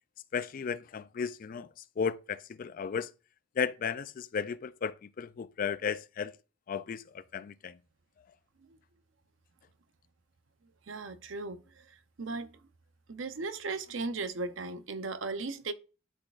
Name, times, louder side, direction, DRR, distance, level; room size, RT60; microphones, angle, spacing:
voice 1, 0.3-1.7 2.0-3.1 3.6-6.3 6.7-7.8, left 6 dB, 45° left, 0.3 m, -34 dB
voice 2, 10.9-11.8 12.2-12.6 13.1-15.7, right 3 dB, 85° right, 0.7 m, -37 dB
11.5 x 4.0 x 2.5 m
head